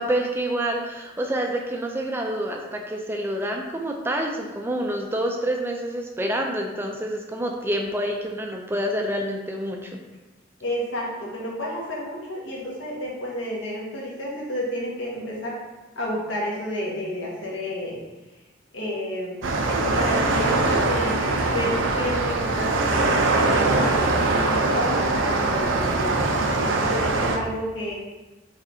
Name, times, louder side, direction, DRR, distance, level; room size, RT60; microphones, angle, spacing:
voice 1, 0.0-10.0, right 1 dB, 10° right, 2 dB, 0.3 m, -27 dB
voice 2, 10.6-15.6 15.9-18.0 18.7-26.2 26.6-27.9, equal, 80° left, -4 dB, 1.2 m, -30 dB
sound 1, 19.4-27.4, right 2 dB, 85° right, 0.5 m, -22 dB
5.2 x 3.2 x 2.6 m, 1.1 s
head